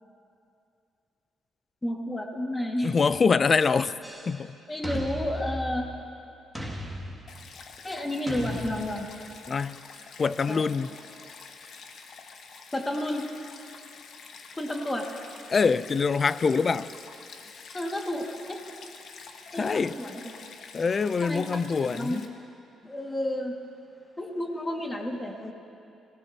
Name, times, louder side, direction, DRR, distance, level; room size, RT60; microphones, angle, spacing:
voice 1, 1.8-2.9 4.7-5.9 7.8-9.1 10.5-10.6 12.7-13.3 14.6-15.1 17.7-18.6 19.5-20.5 21.2-21.4 21.9-22.2 22.8-23.6 24.2-25.5, left 1 dB, 15° left, 1.9 m, -31 dB
voice 2, 2.8-4.0 4.3-4.5 9.5-9.8 10.2-10.9 15.5-16.9 19.6-20.0 20.7-22.2, left 5 dB, 40° left, 0.4 m, -24 dB
sound 1, 4.0-4.4 4.8-6.1 6.5-7.6 8.3-9.3, right 1 dB, 5° right, 2.1 m, -36 dB
Stream, 7.3-22.3, left 5 dB, 60° left, 1.2 m, -47 dB
26.0 x 18.5 x 2.8 m
cardioid pair, 90°, 0 cm